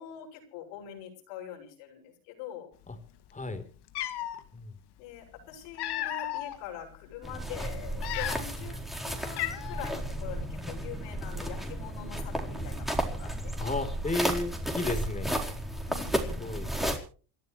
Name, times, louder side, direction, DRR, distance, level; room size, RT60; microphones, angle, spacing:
voice 1, 0.0-2.7 5.0-8.8 9.0-13.5 15.9-16.5, left 9 dB, 80° left, 1 dB, 7.2 m, -44 dB
voice 2, 3.3-3.6 4.5-4.8 13.6-15.4 16.4-16.7, left 2 dB, 15° left, 9 dB, 3.8 m, -33 dB
Cat, 3.4-3.5 3.9-4.4 5.4-6.6 7.1-7.3 7.9-8.7 8.9-9.0 9.4-10.0, left 13 dB, 60° left, 2.4 m, -34 dB
sound 1, 7.2-17.0, right 1 dB, ahead, 4.3 m, -33 dB
28.5 x 12.5 x 3.2 m, 0.39 s
supercardioid pair, 100°, 45 cm